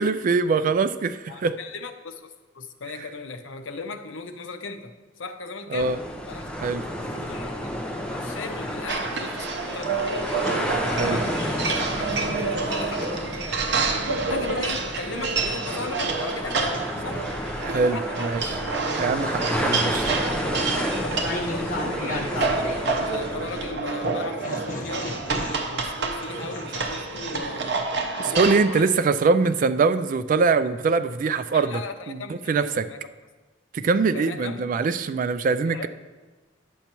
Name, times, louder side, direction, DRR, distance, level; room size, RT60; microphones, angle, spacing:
voice 1, 0.0-1.6 5.7-6.0 6.6-6.8 11.0-11.2 17.6-18.5 18.9-20.2 28.2-31.8 32.1-32.9 33.7-35.9, right 4 dB, 45° right, 13 dB, 0.3 m, -23 dB
voice 2, 1.3-2.3 2.5-6.0 6.3-6.5 7.1-10.1 11.0-13.5 14.3-17.3 17.6-18.3 19.2-19.3 19.6-20.0 20.6-27.9 28.2-29.0 31.5-33.0 34.1-34.7 35.6-35.9, left 4 dB, 85° left, 7 dB, 0.7 m, -37 dB
sound 1, 5.8-23.7, equal, 5° left, 0.7 m, -31 dB
sound 2, 8.9-28.6, right 4 dB, 65° right, 0.8 m, -28 dB
sound 3, 15.6-17.4 18.0-23.6 24.0-27.4, left 1 dB, 45° left, 1.2 m, -35 dB
10.5 x 8.0 x 2.9 m, 1.2 s
head